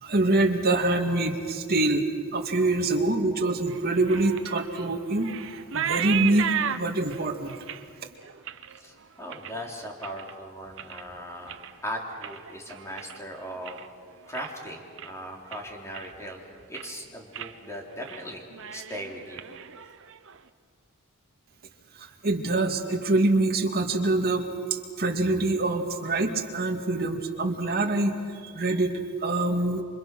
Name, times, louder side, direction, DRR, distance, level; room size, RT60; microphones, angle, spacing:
voice 1, 0.0-5.3 5.7-7.6 22.0-29.8, right 2 dB, 50° right, 2 dB, 2.2 m, -25 dB
sound 1, 3.7-10.3 10.7-11.1 11.4-13.9 14.2-14.6 15.0-15.1 15.5-16.3 16.6-17.0 17.3-17.5 17.9-18.2 18.5-20.4, right 9 dB, 65° right, 0.9 m, -35 dB
voice 2, 8.7-13.9 14.2-16.4 16.7-18.4 18.7-19.4, equal, 15° left, 0 dB, 3.4 m, -38 dB
29.0 x 25.5 x 6.1 m, 2.1 s
head